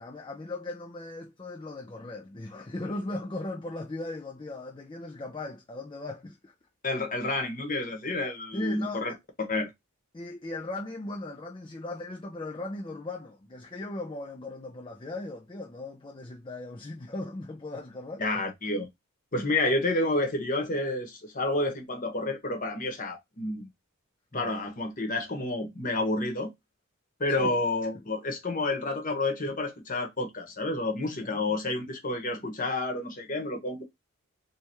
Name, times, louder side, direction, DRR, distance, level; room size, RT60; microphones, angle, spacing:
voice 1, 0.0-6.5 8.5-9.2 10.1-18.2 19.4-19.5 24.3-24.5 27.3-27.6 27.9-28.1 31.2-31.5 32.3-32.5, left 2 dB, 20° left, 0.4 m, -38 dB
voice 2, 6.8-9.1 9.4-9.7 18.2-18.9 19.3-23.7 24.3-26.5 27.2-33.8, left 2 dB, 35° left, 1.1 m, -29 dB
3.3 x 3.3 x 3.0 m
head